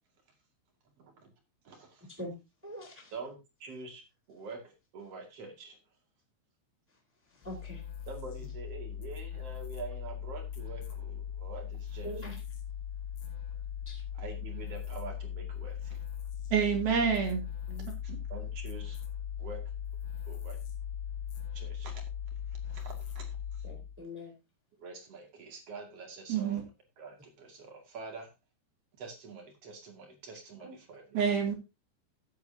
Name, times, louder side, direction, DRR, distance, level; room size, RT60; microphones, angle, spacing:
voice 1, 1.0-1.3 1.6-2.1 3.1-4.0 4.3-5.8 8.1-12.3 14.1-16.0 18.0-19.0 19.4-19.6 20.3-20.6 21.5-22.0 22.6-23.3 23.5-23.6 24.8-26.6 27.0-28.3 29.0-31.3, right 4 dB, 40° right, 2.7 m, -46 dB
voice 2, 2.6-3.1 7.4-7.8 12.0-12.3 13.8-14.0 17.7-17.9 23.6-24.3 30.6-30.7, equal, 5° right, 2.9 m, -42 dB
sound 1, 7.4-24.0, left 9 dB, 75° left, 4.1 m, -39 dB
voice 3, 16.5-17.4 18.1-18.2 26.3-26.6 31.1-31.5, right 7 dB, 60° right, 4.1 m, -27 dB
15.5 x 7.8 x 2.8 m
omnidirectional pair, 5.1 m